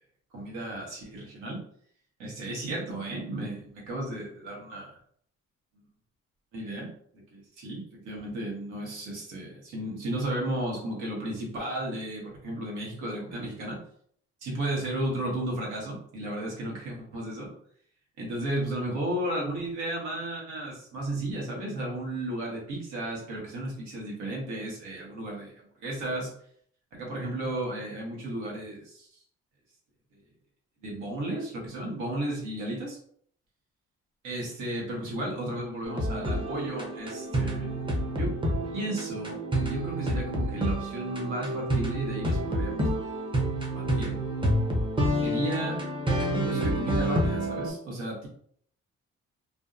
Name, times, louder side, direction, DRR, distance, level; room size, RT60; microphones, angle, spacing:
voice 1, 0.3-1.6 2.2-5.0 5.7-5.8 6.5-6.9 7.3-13.8 14.4-17.5 18.2-26.3 26.9-29.2 30.8-33.0 34.2-37.7 38.1-38.3 38.7-43.1 43.7-44.2 45.2-45.8 46.3-48.3, right 1 dB, 90° right, -2 dB, 1.1 m, -34 dB
sound 1, 35.8-47.7, right 1 dB, 15° right, 0.6 m, -29 dB
2.6 x 2.2 x 2.4 m, 0.62 s
cardioid pair, 90°, 30 cm